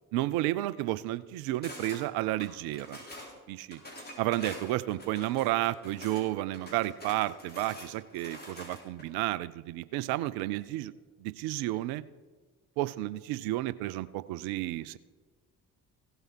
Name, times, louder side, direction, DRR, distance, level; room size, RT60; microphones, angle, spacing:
voice 1, 0.1-3.0 3.5-3.8 4.2-10.9 11.2-12.0 12.8-15.0, right 15 dB, 60° right, 17 dB, 0.6 m, -32 dB
sound 1, 1.6-2.0 2.4-3.3 3.7-6.2 6.5-9.0, left 1 dB, 20° left, 4.3 m, -45 dB
16.0 x 7.9 x 4.7 m, 1.4 s
figure-of-eight pair, 45°, 42 cm